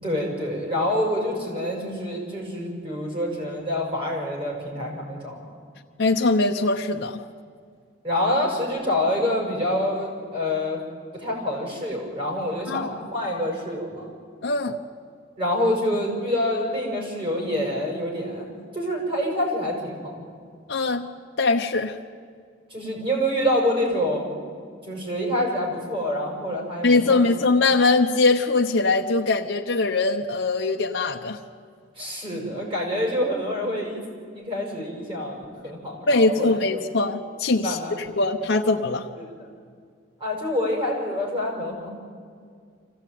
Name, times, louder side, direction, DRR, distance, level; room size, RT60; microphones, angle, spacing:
voice 1, 0.0-5.6 8.0-10.8 11.1-14.1 15.4-18.5 18.7-20.2 22.7-24.2 24.8-27.2 32.0-34.0 34.3-36.8 37.6-38.1 39.2-39.3 40.2-41.9, left 1 dB, 30° right, 0 dB, 6.4 m, -26 dB
voice 2, 6.0-7.2 12.7-12.9 14.4-14.8 20.7-21.1 21.4-22.0 26.8-31.4 36.1-39.1, left 3 dB, 70° left, 1 dB, 0.9 m, -22 dB
25.0 x 16.0 x 9.3 m, 2.1 s
head